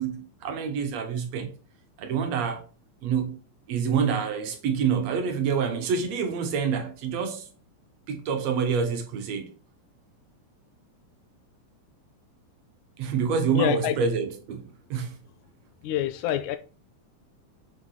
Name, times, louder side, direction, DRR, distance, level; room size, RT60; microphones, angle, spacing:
voice 1, 0.0-1.5 2.0-2.7 3.0-3.4 3.7-7.5 8.1-9.5 13.0-15.2, right 6 dB, 70° right, 1.9 m, -27 dB
voice 2, 13.5-14.0 15.8-16.6, left 12 dB, 85° left, 2.1 m, -26 dB
8.0 x 5.5 x 3.9 m
omnidirectional pair, 3.5 m